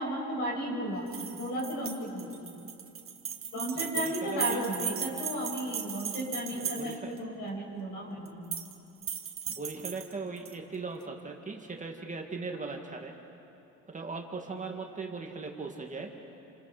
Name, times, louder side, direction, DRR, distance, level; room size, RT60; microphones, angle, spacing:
voice 1, 0.0-2.3 3.5-8.4, equal, 70° left, -2 dB, 8.0 m, -34 dB
sound 1, 1.1-7.2 8.3-8.7 9.0-10.5, right 8 dB, 40° right, 1.9 m, -37 dB
voice 2, 3.7-4.6 6.5-7.2 7.8-7.9 9.6-13.1 13.9-16.1, right 4 dB, 25° right, 2 dB, 2.1 m, -39 dB
29.0 x 27.0 x 5.1 m, 2.8 s
cardioid pair, 110°, 32 cm